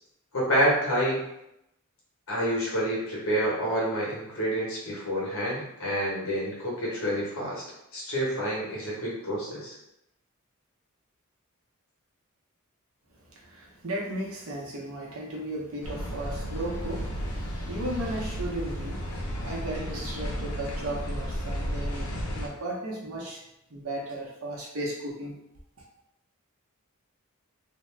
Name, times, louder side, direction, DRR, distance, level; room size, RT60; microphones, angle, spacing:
voice 1, 0.3-1.2 2.3-7.6 7.9-9.7, equal, 70° left, -5 dB, 1.2 m, -28 dB
voice 2, 13.3-23.4 23.7-25.4, right 1 dB, 75° right, -3 dB, 0.8 m, -35 dB
sound 1, 15.8-22.5, equal, 90° left, 0.7 m, -33 dB
2.8 x 2.2 x 3.2 m, 0.84 s
head